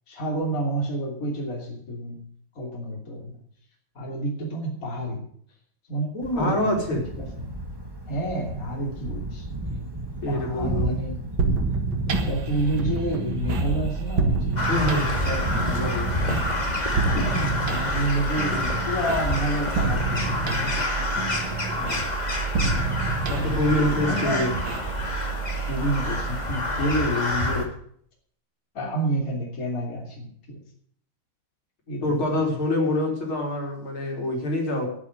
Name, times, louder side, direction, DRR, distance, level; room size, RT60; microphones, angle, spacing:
voice 1, 0.1-2.2 2.5-3.4 3.9-5.2 5.9-6.8 7.2-7.5 8.1-9.5 10.2-11.2 12.1-16.6 17.2-21.1 21.8-22.0 23.3-24.4 25.7-27.7 28.7-30.6 31.9-32.5, right 1 dB, 40° left, -1 dB, 3.4 m, -29 dB
Thunder, 6.2-19.6, right 1 dB, 15° right, 1.1 m, -33 dB
voice 2, 6.3-7.0 10.2-10.9 14.7-15.1 23.3-24.5 32.0-34.9, left 1 dB, 70° left, 0 dB, 4.4 m, -25 dB
sound 1, 11.4-27.0, right 4 dB, 60° right, 2.2 m, -29 dB
Crow, 14.6-27.7, left 2 dB, 20° left, 2.0 m, -28 dB
11.0 x 8.7 x 9.3 m, 0.63 s
omnidirectional pair, 2.4 m